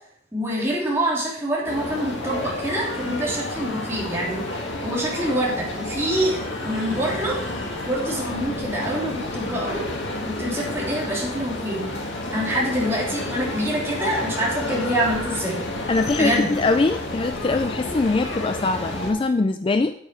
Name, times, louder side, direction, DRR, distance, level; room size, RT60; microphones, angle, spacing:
voice 1, 0.3-4.4 4.8-7.4 7.8-9.8 10.2-11.8 12.3-15.6 16.2-16.5, right 1 dB, 15° right, -5 dB, 3.3 m, -25 dB
sound 1, 1.7-19.1, left 2 dB, 85° left, 2.3 m, -30 dB
voice 2, 15.9-19.9, left 3 dB, 30° left, 9 dB, 0.3 m, -22 dB
8.9 x 8.4 x 4.6 m, 0.66 s
head